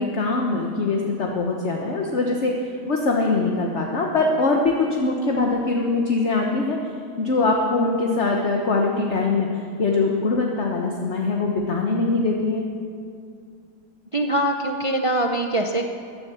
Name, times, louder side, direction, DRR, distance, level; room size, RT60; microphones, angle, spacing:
voice 1, 0.0-2.6 2.9-6.8 7.2-9.5 9.8-12.6, left 3 dB, 45° left, 0 dB, 1.4 m, -22 dB
voice 2, 14.1-15.9, right 1 dB, 35° right, 3 dB, 0.5 m, -23 dB
15.0 x 10.5 x 7.1 m, 2.3 s
omnidirectional pair, 1.8 m